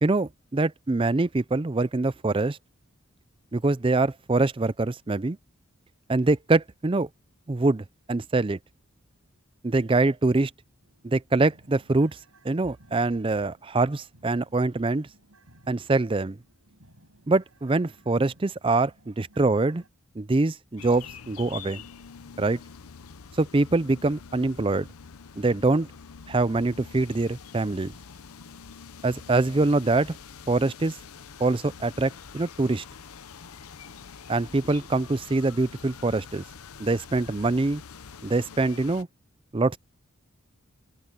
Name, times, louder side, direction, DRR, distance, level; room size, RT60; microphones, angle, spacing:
voice 1, 0.0-2.6 3.5-5.4 6.1-7.1 7.5-8.6 9.6-10.5 11.0-12.2 12.4-15.1 15.7-16.4 17.3-19.8 20.2-21.8 22.4-22.6 23.4-24.9 25.4-25.9 26.3-27.9 29.0-30.2 30.5-31.0 31.4-32.8 34.3-36.4 36.8-37.8 38.2-39.1 39.5-39.8, right 3 dB, 25° right, 0.4 m, -24 dB
sound 1, 10.8-19.9, right 1 dB, 80° right, 7.7 m, -59 dB
sound 2, 20.8-39.0, left 6 dB, 90° left, 0.8 m, -45 dB
open air
head